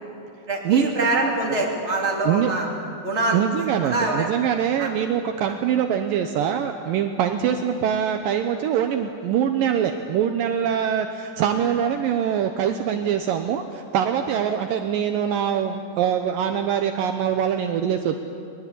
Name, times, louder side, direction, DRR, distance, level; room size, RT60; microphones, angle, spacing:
voice 1, 0.5-2.7 3.0-3.4 3.8-4.3 4.8-4.9 5.4-5.5, right 2 dB, 20° right, -1 dB, 2.9 m, -24 dB
voice 2, 3.3-18.2, right 9 dB, 75° right, 6 dB, 2.4 m, -23 dB
21.5 x 21.0 x 8.5 m, 2.5 s
omnidirectional pair, 4.4 m